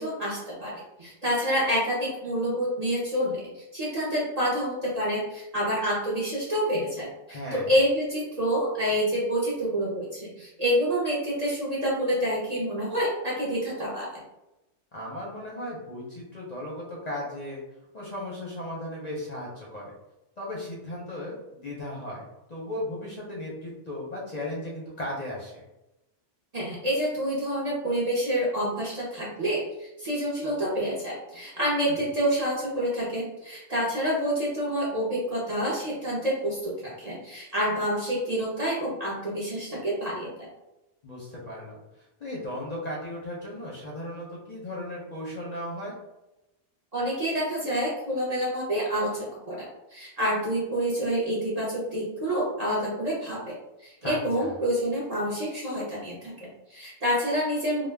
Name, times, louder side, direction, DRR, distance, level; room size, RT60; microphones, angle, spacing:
voice 1, 0.0-14.2 26.5-40.5 46.9-49.6 49.9-53.6 53.8-57.9, equal, 45° right, -6 dB, 0.6 m, -28 dB
voice 2, 7.3-7.7 14.9-17.6 17.9-19.9 20.4-25.6 31.9-32.0 41.0-45.9 54.0-54.5, left 1 dB, 45° left, -4 dB, 0.6 m, -36 dB
2.3 x 2.1 x 3.2 m, 0.94 s
omnidirectional pair, 1.2 m